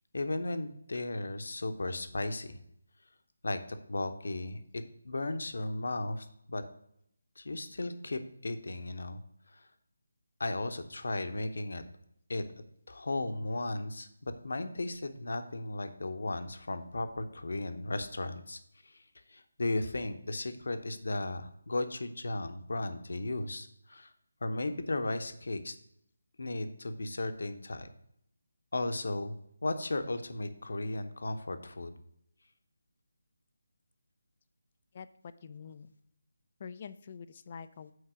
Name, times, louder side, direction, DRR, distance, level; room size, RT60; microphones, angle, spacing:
voice 1, 0.1-2.6 3.4-6.6 7.4-9.2 9.5-9.7 10.4-11.8 12.3-12.4 12.9-19.0 19.3-24.1 24.4-25.7 26.4-27.9 28.7-31.9, left 2 dB, 65° left, 9 dB, 0.9 m, -35 dB
voice 2, 35.4-35.9 36.6-37.9, left 6 dB, 35° left, 13 dB, 0.4 m, -45 dB
6.5 x 4.6 x 6.1 m, 0.73 s
figure-of-eight pair, 155°, 0 cm